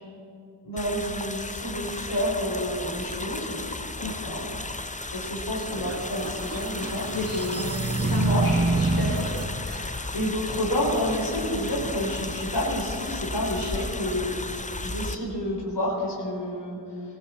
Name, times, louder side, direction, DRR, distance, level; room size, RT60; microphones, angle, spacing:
voice 1, 0.6-3.6 4.0-4.6 5.1-8.4 10.1-17.0, equal, 80° left, -3 dB, 4.2 m, -30 dB
sound 1, 0.8-15.2, left 2 dB, 20° left, 0.7 m, -35 dB
sound 2, 5.7-9.5, right 3 dB, 35° right, 1.1 m, -27 dB
voice 2, 7.1-9.3 9.6-9.9, left 2 dB, 55° left, -4 dB, 2.7 m, -32 dB
sound 3, 8.0-14.6, left 3 dB, 35° left, 1.1 m, -42 dB
19.5 x 15.5 x 4.5 m, 2.5 s
wide cardioid pair, 55°, 41 cm